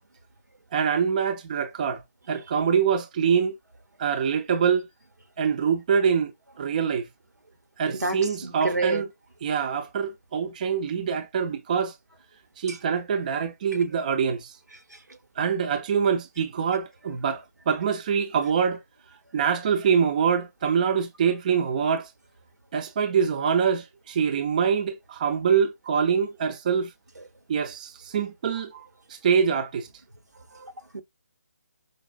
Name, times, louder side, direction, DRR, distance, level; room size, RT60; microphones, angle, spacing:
voice 1, 0.7-2.0 2.3-3.6 4.0-4.9 5.4-6.3 6.6-7.1 7.8-9.1 9.4-11.9 12.6-14.6 15.4-18.8 19.3-22.1 22.7-26.9 27.5-28.7 29.1-29.9, right 6 dB, 30° right, 0.4 m, -24 dB
voice 2, 7.9-9.0 12.7-12.8 30.6-31.0, right 2 dB, 85° right, 0.9 m, -29 dB
5.0 x 2.0 x 2.5 m
figure-of-eight pair, 150°, 9 cm